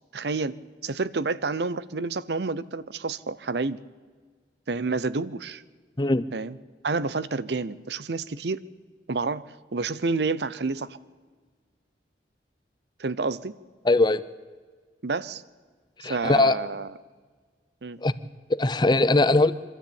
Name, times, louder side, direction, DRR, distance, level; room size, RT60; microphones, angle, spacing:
voice 1, 0.1-3.8 4.7-5.6 6.3-6.5 6.8-8.6 9.1-11.0 13.0-13.6 15.0-15.4 16.0-16.9 17.8-18.0, right 3 dB, 70° right, 17 dB, 0.7 m, -29 dB
voice 2, 13.8-14.2 16.0-16.6 18.0-18.1 18.5-19.5, left 2 dB, 25° left, 15 dB, 0.6 m, -20 dB
24.0 x 13.5 x 8.8 m, 1.5 s
head